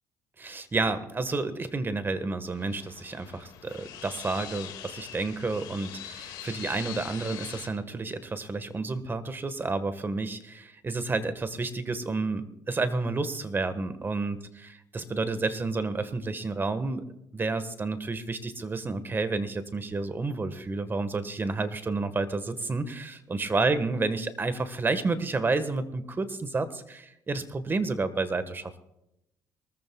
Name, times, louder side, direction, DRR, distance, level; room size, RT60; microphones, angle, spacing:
voice 1, 0.4-14.4 14.9-17.0 17.3-28.8, right 3 dB, 30° right, 11 dB, 1.5 m, -30 dB
sound 1, 2.5-7.7, left 10 dB, 75° left, 2.1 m, -42 dB
23.5 x 14.5 x 2.4 m, 0.85 s
supercardioid pair, 75°, 7 cm